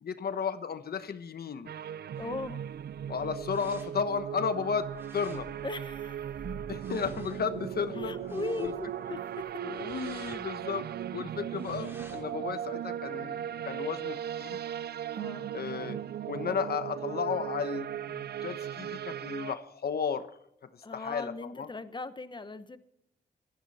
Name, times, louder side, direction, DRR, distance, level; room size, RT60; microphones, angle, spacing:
voice 1, 0.0-1.7 3.1-5.5 6.7-8.1 8.6-8.7 9.6-10.9 11.1-13.3 13.6-14.6 15.5-16.0 16.3-20.3 20.9-21.3 21.6-21.7, left 6 dB, 65° left, 11 dB, 1.1 m, -33 dB
sound 1, 1.7-19.6, right 10 dB, 65° right, 0.5 m, -37 dB
sound 2, 2.1-12.4, right 2 dB, 15° right, 3.1 m, -52 dB
voice 2, 2.2-2.6 5.6-6.5 7.9-9.5 11.8-12.0 15.2-15.5 20.8-22.8, left 3 dB, 25° left, 12 dB, 1.1 m, -39 dB
18.5 x 14.0 x 4.3 m, 0.73 s
wide cardioid pair, 120°, 18 cm